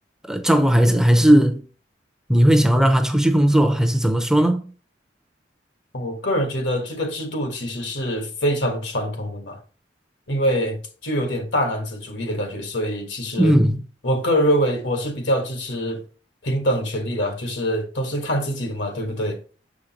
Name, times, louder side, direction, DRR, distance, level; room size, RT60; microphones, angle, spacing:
voice 1, 0.2-1.6 2.3-4.6 13.4-13.8, equal, 5° right, 0.5 m, -17 dB
voice 2, 5.9-9.6 10.3-13.5 14.0-16.0 16.4-19.4, equal, 80° left, 1.5 m, -24 dB
7.1 x 5.1 x 2.9 m
head